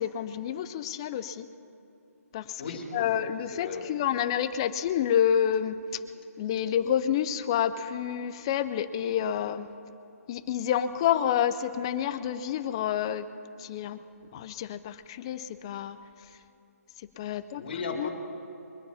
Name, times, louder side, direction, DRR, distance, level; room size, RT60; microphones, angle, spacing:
voice 1, 0.0-1.5 2.3-2.6 2.9-5.8 6.4-9.7 10.3-13.3 13.6-14.0 14.3-16.0 17.2-17.6 18.0-18.1, left 9 dB, 20° left, 12 dB, 0.4 m, -28 dB
voice 2, 2.6-3.1 3.5-3.9 17.6-18.1, left 5 dB, 40° left, 0 dB, 3.0 m, -35 dB
23.5 x 8.6 x 5.5 m, 3.0 s
hypercardioid pair, 170°, 8 cm